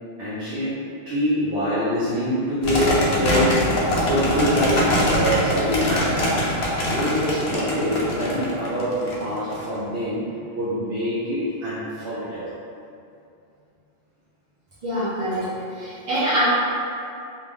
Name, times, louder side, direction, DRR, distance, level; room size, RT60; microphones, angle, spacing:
voice 1, 0.2-0.8 1.1-10.2 10.5-12.4, equal, 65° right, -11 dB, 0.9 m, -25 dB
sound 1, 2.6-9.6, left 1 dB, 70° left, 0.8 m, -23 dB
voice 2, 14.8-15.5 15.8-16.4, right 1 dB, 50° right, -10 dB, 0.4 m, -24 dB
2.4 x 2.1 x 3.4 m, 2.5 s
omnidirectional pair, 1.1 m